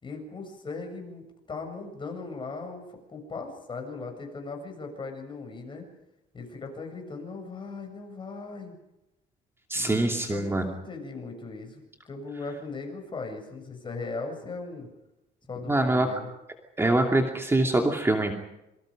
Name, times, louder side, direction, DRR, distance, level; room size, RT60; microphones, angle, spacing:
voice 1, 0.0-5.9 6.3-8.8 9.7-14.9 15.5-16.3, left 3 dB, 30° left, 4 dB, 7.6 m, -38 dB
voice 2, 9.7-10.7 15.7-16.1 16.8-18.3, right 2 dB, 15° right, 2 dB, 2.7 m, -24 dB
27.0 x 24.5 x 5.2 m, 0.91 s
cardioid pair, 110°, 17 cm